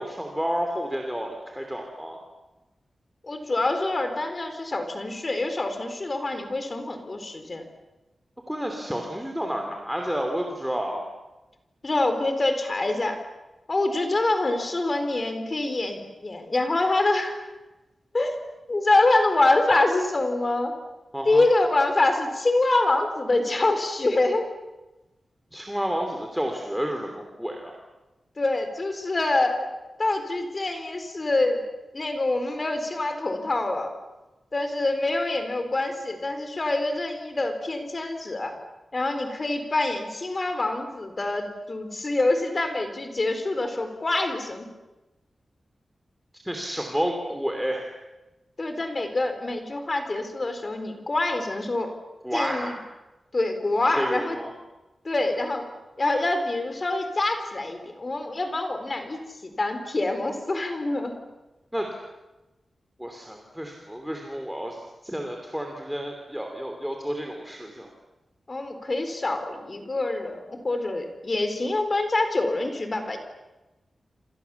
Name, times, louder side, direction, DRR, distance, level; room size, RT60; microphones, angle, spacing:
voice 1, 0.0-2.2 8.5-11.0 21.1-21.5 25.5-27.7 46.3-47.9 52.2-52.7 54.0-54.5 61.7-62.0 63.0-67.9, equal, ahead, 2 dB, 2.9 m, -30 dB
voice 2, 3.2-7.6 11.8-13.2 13.7-17.5 18.1-18.4 18.7-20.8 21.2-24.4 28.4-29.7 30.0-31.7 31.9-33.9 34.5-38.5 38.9-44.7 48.6-51.9 52.3-52.7 53.3-54.4 55.0-55.6 56.0-61.2 68.5-73.2, left 2 dB, 30° left, 7 dB, 4.1 m, -25 dB
28.0 x 28.0 x 7.1 m, 1.1 s
wide cardioid pair, 175°, 0 cm